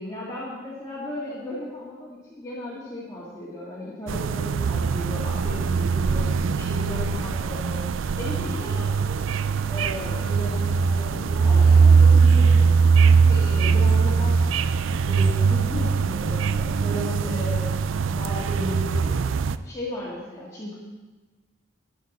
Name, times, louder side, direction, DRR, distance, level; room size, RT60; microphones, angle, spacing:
voice 1, 0.0-6.3 6.5-7.8 8.2-9.2 9.6-14.4 15.0-19.2 19.6-20.7, left 1 dB, 15° left, -7 dB, 1.8 m, -35 dB
sound 1, 4.1-19.6, right 5 dB, 80° right, 0.4 m, -21 dB
13.0 x 10.5 x 4.1 m, 1.3 s
head